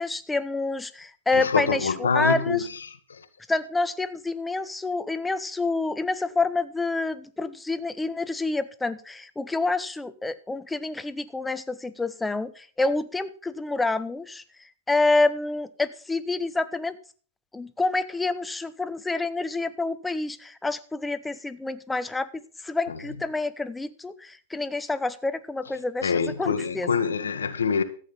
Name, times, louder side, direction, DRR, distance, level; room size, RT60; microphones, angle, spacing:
voice 1, 0.0-2.6 3.5-14.4 14.9-17.0 17.5-26.1 26.4-26.9, left 3 dB, 10° left, 0.9 m, -28 dB
voice 2, 1.3-3.2 22.9-23.0 26.0-27.8, left 5 dB, 90° left, 1.5 m, -26 dB
14.0 x 8.4 x 5.5 m
hypercardioid pair, 115°, 0 cm